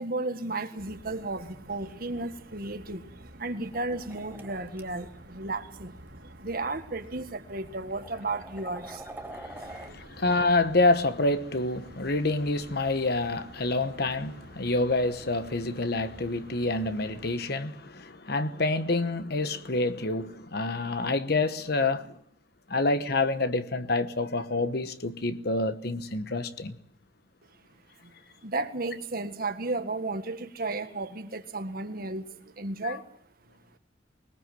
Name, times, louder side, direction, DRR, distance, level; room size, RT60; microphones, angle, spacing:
voice 1, 0.0-3.1 3.4-5.9 6.4-9.2 9.6-10.0 28.0-28.1 28.4-33.0, right 2 dB, 50° right, 1.7 m, -34 dB
sound 1, 0.8-17.4, right 1 dB, 75° right, 3.0 m, -50 dB
sound 2, 3.7-4.8 5.9-6.1 7.0-7.1 7.7-9.9, right 2 dB, 10° right, 1.2 m, -45 dB
voice 2, 9.3-22.2 22.7-26.8 32.8-33.0, left 2 dB, 60° left, 1.2 m, -27 dB
21.5 x 19.5 x 7.7 m
head